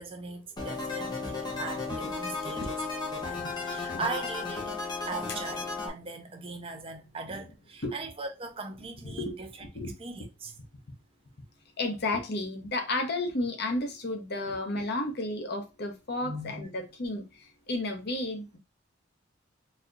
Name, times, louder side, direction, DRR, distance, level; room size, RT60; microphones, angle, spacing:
voice 1, 0.0-2.8 3.1-4.7 5.0-9.5 10.0-10.5 16.2-16.7, right 3 dB, 30° right, 0.6 m, -39 dB
sound 1, 0.6-5.9, left 3 dB, 25° left, 0.9 m, -34 dB
voice 2, 11.8-17.3 17.7-18.6, left 2 dB, 60° left, 0.8 m, -32 dB
4.1 x 2.7 x 2.3 m
head